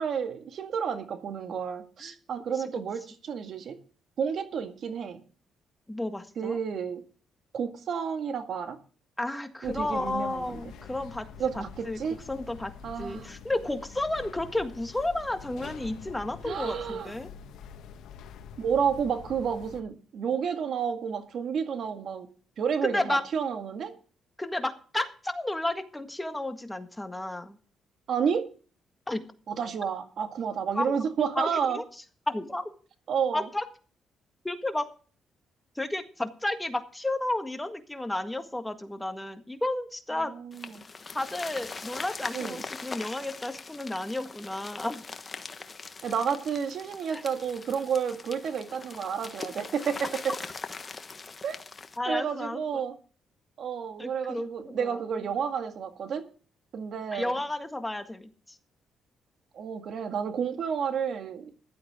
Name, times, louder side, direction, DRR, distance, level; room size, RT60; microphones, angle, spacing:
voice 1, 0.0-3.8 4.2-5.2 6.4-7.0 7.5-8.8 9.6-10.6 11.4-12.2 12.8-13.3 16.4-17.1 18.6-22.3 22.6-23.9 28.1-28.5 29.5-31.8 33.1-33.5 40.1-40.8 42.3-42.6 46.0-50.3 51.4-51.6 52.1-52.9 53.6-56.3 56.7-57.4 59.5-61.5, right 7 dB, 60° right, 1.9 m, -31 dB
voice 2, 5.9-6.6 9.2-11.3 11.5-12.0 12.3-12.7 13.0-17.3 22.8-23.2 24.4-27.6 29.1-29.2 30.7-30.9 31.3-31.8 32.3-32.7 33.3-33.6 34.4-34.8 35.7-40.3 41.1-45.0 47.1-47.2 52.0-52.8 54.0-55.0 57.1-58.3, left 1 dB, 10° left, 1.7 m, -32 dB
sound 1, 9.6-19.8, left 7 dB, 80° left, 1.3 m, -46 dB
sound 2, 40.5-52.0, left 4 dB, 30° left, 1.4 m, -41 dB
15.0 x 12.0 x 3.7 m
cardioid pair, 90°, 0 cm